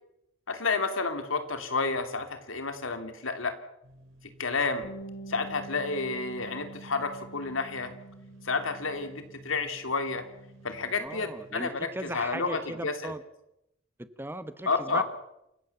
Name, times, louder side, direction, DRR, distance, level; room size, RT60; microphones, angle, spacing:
voice 1, 0.5-3.5 4.4-4.9 5.3-7.9 8.4-10.2 10.6-13.1 14.7-15.0, left 4 dB, 80° left, 8 dB, 2.9 m, -30 dB
sound 1, 3.8-12.1, right 1 dB, 75° right, 3.8 m, -55 dB
Bass guitar, 4.8-9.5 9.9-11.1, right 3 dB, 55° left, 1.8 m, -47 dB
voice 2, 11.0-13.2 14.0-15.0, right 1 dB, 10° right, 12 dB, 1.1 m, -38 dB
28.0 x 16.0 x 7.2 m, 0.84 s
head